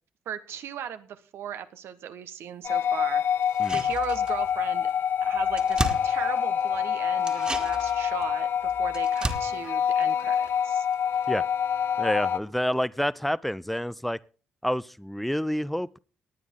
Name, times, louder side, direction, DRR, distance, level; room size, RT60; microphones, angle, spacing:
voice 1, 0.2-3.2 3.7-4.9 5.2-10.9, right 9 dB, 75° right, 1.3 m, -38 dB
sound 1, 2.6-12.4, left 8 dB, 60° left, 0.8 m, -26 dB
sound 2, 3.4-4.6 4.9-5.0 5.2-6.8 7.2-10.9 11.2-11.3, right 1 dB, 20° right, 2.1 m, -35 dB
voice 2, 12.0-14.2 14.6-16.0, equal, 5° left, 0.7 m, -28 dB
18.5 x 9.4 x 3.8 m
supercardioid pair, 55°, 4 cm